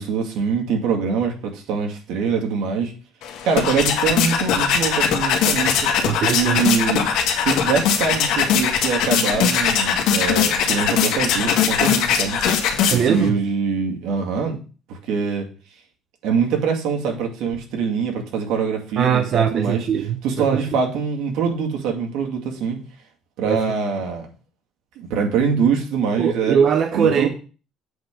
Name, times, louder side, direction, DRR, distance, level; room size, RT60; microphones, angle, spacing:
voice 1, 0.0-2.9 3.4-5.8 6.3-7.1 7.4-12.4 12.9-14.6 14.9-15.5 16.2-19.9 20.2-22.8 23.4-24.3 25.0-26.6 26.9-27.3, right 6 dB, 75° right, 2.2 m, -23 dB
sound 1, 3.2-13.3, left 7 dB, 70° left, 1.6 m, -20 dB
voice 2, 6.0-6.6 12.9-13.4 19.0-20.8 23.4-23.6 26.2-27.3, right 7 dB, 40° right, 0.6 m, -21 dB
7.8 x 3.8 x 6.8 m
cardioid pair, 170°, 0 cm